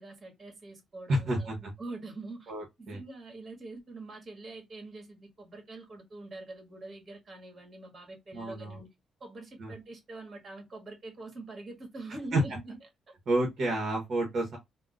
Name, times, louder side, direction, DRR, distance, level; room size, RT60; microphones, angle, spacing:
voice 1, 0.0-2.5 2.8-8.9 9.2-12.8, right 2 dB, 40° right, 1.8 m, -44 dB
voice 2, 1.1-1.6 2.5-3.0 8.3-8.8 9.6-9.7 12.3-12.4 13.3-14.6, right 1 dB, 60° right, 1.2 m, -29 dB
3.7 x 2.4 x 2.4 m
cardioid pair, 90°, 0 cm